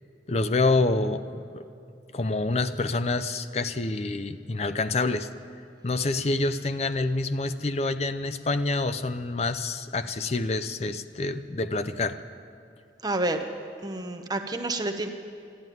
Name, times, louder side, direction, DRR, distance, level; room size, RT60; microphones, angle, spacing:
voice 1, 0.3-1.6 2.1-5.3 5.8-12.2, left 3 dB, 35° left, 11 dB, 0.5 m, -27 dB
voice 2, 13.0-13.4 13.8-15.1, right 2 dB, 20° right, 5 dB, 0.8 m, -29 dB
12.5 x 11.5 x 9.3 m, 2.6 s
head